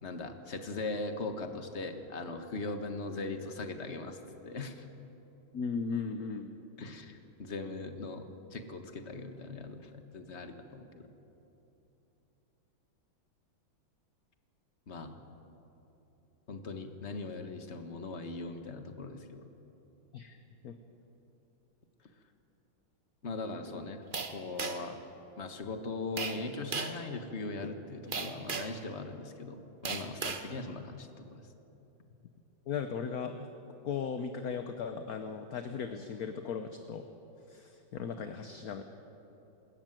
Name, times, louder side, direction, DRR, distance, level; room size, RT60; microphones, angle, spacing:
voice 1, 0.0-4.2 4.4-4.8 6.8-8.3 8.5-11.1 14.9-15.2 16.5-19.4 23.2-24.0 24.3-25.0 25.4-31.4, left 3 dB, 35° left, 7 dB, 1.5 m, -40 dB
voice 2, 5.5-6.5 20.1-20.4 20.6-20.7 32.7-33.5 33.8-37.1 37.5-38.8, left 6 dB, 55° left, 7 dB, 1.2 m, -37 dB
sound 1, 24.1-25.0 26.2-26.4 26.7-27.0 28.1-28.8 29.8-30.5, right 5 dB, 35° right, 0.9 m, -36 dB
25.5 x 13.5 x 9.1 m, 3.0 s
omnidirectional pair, 2.2 m